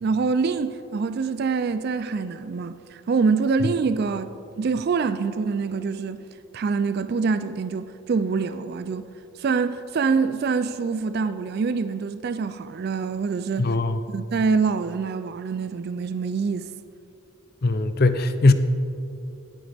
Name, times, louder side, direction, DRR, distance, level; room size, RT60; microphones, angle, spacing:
voice 1, 0.0-6.2 6.5-9.1 9.4-13.7 14.1-16.7, right 5 dB, 45° right, 0.3 m, -25 dB
voice 2, 13.6-14.0 17.6-18.5, left 2 dB, 45° left, 0.5 m, -19 dB
18.5 x 9.0 x 3.4 m
head